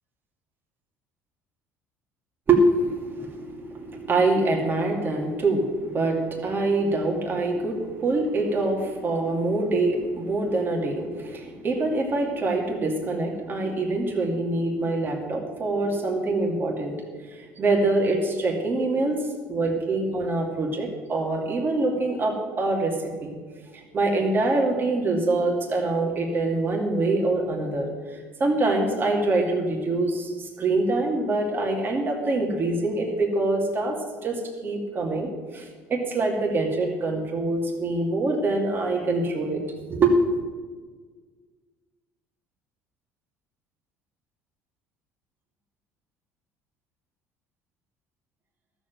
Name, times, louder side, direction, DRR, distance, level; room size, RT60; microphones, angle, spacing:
voice 1, 2.5-16.9 17.3-19.2 19.5-23.4 23.9-39.6 39.9-40.2, right 2 dB, 35° right, 0 dB, 2.5 m, -25 dB
12.5 x 7.2 x 9.2 m, 1.5 s
supercardioid pair, 90°, 6 cm